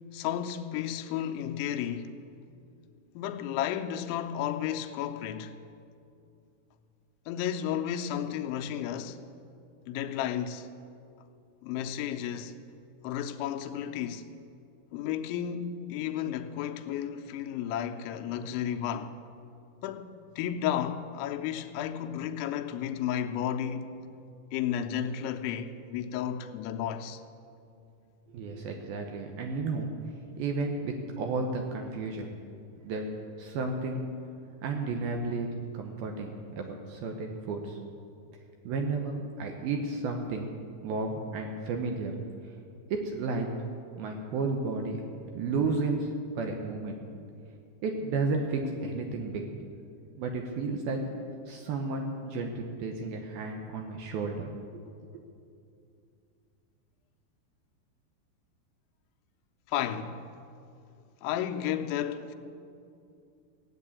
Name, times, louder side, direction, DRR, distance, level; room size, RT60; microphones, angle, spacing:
voice 1, 0.1-2.1 3.2-5.6 7.3-9.2 9.9-10.7 11.6-12.6 13.0-14.3 14.9-19.2 19.8-20.1 20.4-23.9 24.5-27.2 59.7-60.2 61.2-62.4, left 10 dB, 85° left, 3.1 m, -33 dB
voice 2, 28.3-29.9 30.4-32.3 32.8-33.1 33.4-34.0 34.6-35.5 35.7-37.8 38.6-40.5 40.8-42.1 42.9-43.5 44.0-45.0 45.3-46.1 46.4-47.0 47.8-49.4 50.2-51.0 51.5-54.8, right 3 dB, 75° right, 2.3 m, -32 dB
16.5 x 8.9 x 8.4 m
omnidirectional pair, 5.2 m